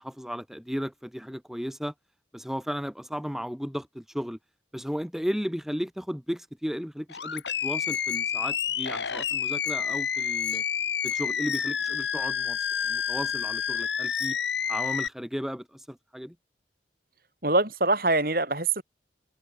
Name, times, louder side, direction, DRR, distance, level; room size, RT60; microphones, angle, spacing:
voice 1, 0.0-1.9 2.3-4.4 4.7-10.6 11.0-14.4 14.7-16.4, equal, ahead, 4.2 m, -34 dB
Animal, 7.1-15.1, left 7 dB, 80° left, 1.8 m, -29 dB
voice 2, 17.4-18.8, right 2 dB, 50° right, 6.5 m, -24 dB
open air
head